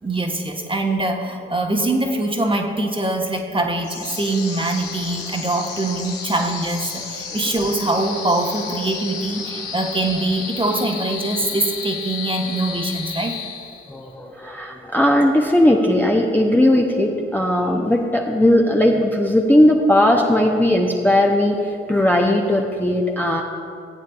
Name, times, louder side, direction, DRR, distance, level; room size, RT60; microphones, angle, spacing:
voice 1, 0.0-13.4, right 2 dB, 20° right, 2 dB, 1.3 m, -23 dB
sound 1, 3.8-14.1, left 5 dB, 75° left, 1.6 m, -32 dB
voice 2, 13.9-23.4, left 1 dB, 5° left, 0 dB, 0.8 m, -17 dB
15.0 x 9.1 x 2.4 m, 2.4 s
hypercardioid pair, 40°, 29 cm